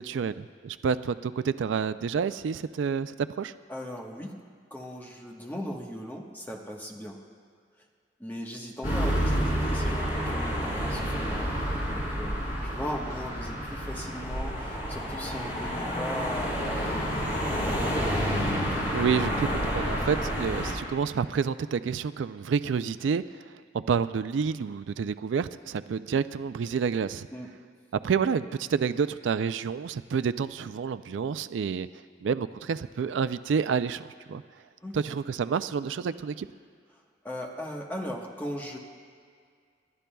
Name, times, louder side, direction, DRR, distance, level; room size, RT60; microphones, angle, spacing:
voice 1, 0.0-3.5 18.9-27.3 28.0-31.9 32.2-34.4 34.9-36.5, right 6 dB, 85° right, 13 dB, 0.4 m, -29 dB
voice 2, 3.7-4.3 4.7-7.2 8.2-11.6 11.9-18.0 27.3-27.5 34.8-35.1 37.2-38.8, equal, 10° left, -1 dB, 1.2 m, -38 dB
sound 1, 8.8-20.7, equal, 45° left, 3.9 m, -29 dB
29.0 x 12.0 x 2.3 m, 2.1 s
head